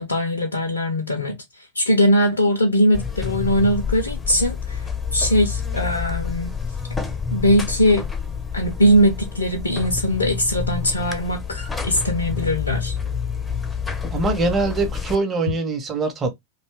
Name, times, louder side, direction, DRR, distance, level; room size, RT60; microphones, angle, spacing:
voice 1, 0.0-6.6 7.3-8.0 8.5-13.0, equal, 75° left, 0.4 m, -20 dB
Buzz, 2.9-15.2, left 6 dB, 10° left, 0.5 m, -28 dB
voice 2, 14.1-16.3, right 3 dB, 20° right, 0.7 m, -23 dB
2.6 x 2.2 x 3.2 m
figure-of-eight pair, 90°, 0 cm